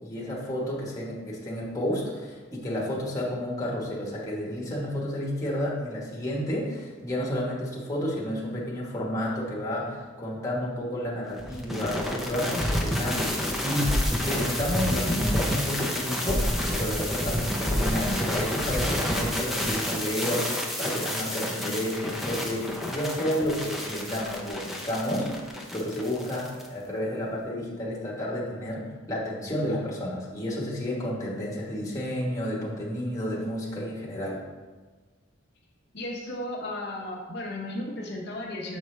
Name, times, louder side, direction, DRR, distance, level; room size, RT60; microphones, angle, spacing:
voice 1, 0.0-34.4, equal, 15° left, -4 dB, 1.2 m, -31 dB
sound 1, 11.4-26.7, left 1 dB, ahead, 0.6 m, -29 dB
voice 2, 35.9-38.8, left 1 dB, 55° left, -2 dB, 0.8 m, -34 dB
7.2 x 4.6 x 3.2 m, 1.4 s
head